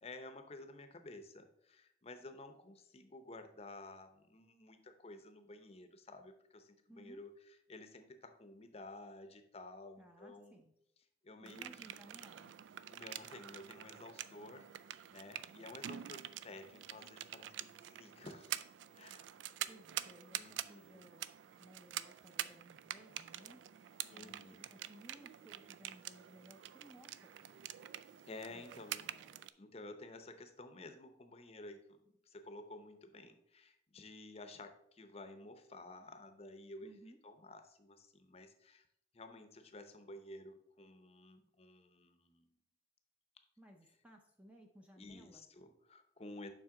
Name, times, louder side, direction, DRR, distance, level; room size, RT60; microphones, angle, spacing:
voice 1, 0.0-10.5 11.2-11.7 12.9-14.7 15.1-18.5 18.9-19.3 20.3-21.0 24.1-24.7 28.2-29.1 29.6-37.0 37.2-38.8 39.1-42.5 45.0-46.5, left 2 dB, 35° left, 8 dB, 0.7 m, -53 dB
voice 2, 6.9-7.3 10.0-10.7 11.4-12.5 19.7-21.3 21.6-23.6 24.1-27.8 28.5-29.5 36.8-37.2 43.6-45.5, right 1 dB, 5° right, 3 dB, 0.5 m, -60 dB
sound 1, 11.5-29.5, right 11 dB, 80° right, 0.3 m, -47 dB
7.3 x 5.5 x 3.7 m, 0.74 s
head